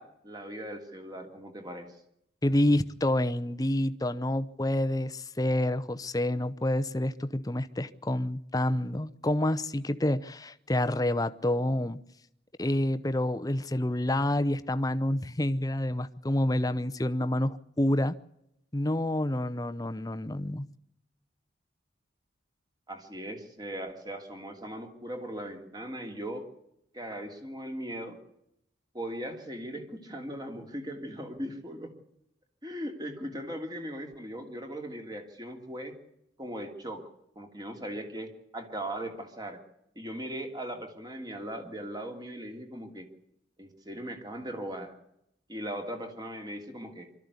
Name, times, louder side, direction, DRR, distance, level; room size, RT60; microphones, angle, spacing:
voice 1, 0.0-1.9 22.9-26.5 26.9-28.2 28.9-31.9 32.6-35.9 36.4-37.0 37.3-39.6 39.9-43.1 43.6-45.0 45.5-47.1, right 1 dB, 20° right, 2.9 m, -39 dB
voice 2, 2.4-12.0 12.6-18.2 18.7-20.7, left 1 dB, 20° left, 0.8 m, -28 dB
24.5 x 13.5 x 8.3 m
head